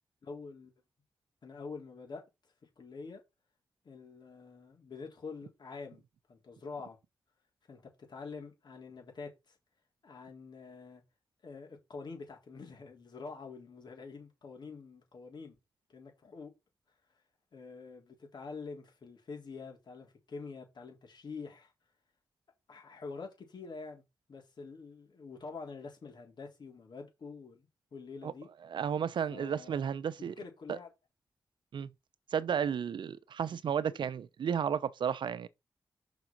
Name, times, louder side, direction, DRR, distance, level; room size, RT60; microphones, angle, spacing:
voice 1, 0.2-0.7 1.4-2.2 2.8-3.2 3.8-6.0 6.3-7.0 7.7-9.6 10.0-11.0 11.4-15.6 15.9-16.5 17.5-21.7 22.7-24.0 24.3-28.5 29.3-29.8 30.4-30.9, left 4 dB, 65° left, 4.0 m, -46 dB
voice 2, 28.6-30.4 30.7-30.8 31.7-31.9 32.3-35.5, right 8 dB, 80° right, 0.7 m, -33 dB
6.0 x 5.1 x 5.9 m
cardioid pair, 65°, 8 cm